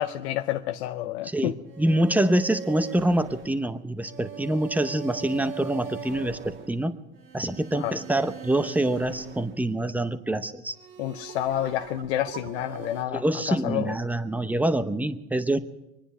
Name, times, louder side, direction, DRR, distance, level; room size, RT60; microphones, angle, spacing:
voice 1, 0.0-1.5 7.8-8.0 11.0-13.9, left 13 dB, 85° left, 0.7 m, -29 dB
voice 2, 1.2-6.9 7.3-10.7 13.1-15.6, right 1 dB, 5° right, 0.8 m, -26 dB
sound 1, 1.7-10.2 10.7-13.0, right 6 dB, 40° right, 1.7 m, -41 dB
24.5 x 10.0 x 5.6 m
supercardioid pair, 110°, 32 cm